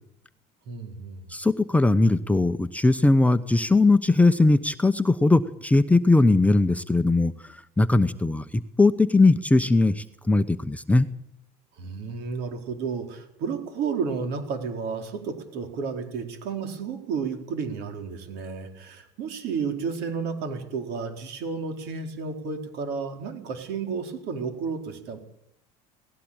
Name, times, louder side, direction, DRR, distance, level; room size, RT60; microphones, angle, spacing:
voice 1, 0.7-1.3 11.8-25.2, right 5 dB, 65° right, 5 dB, 4.4 m, -32 dB
voice 2, 1.3-7.3 7.8-11.1, left 2 dB, 10° left, 10 dB, 0.8 m, -20 dB
18.5 x 16.0 x 8.9 m, 0.76 s
supercardioid pair, 115°, 18 cm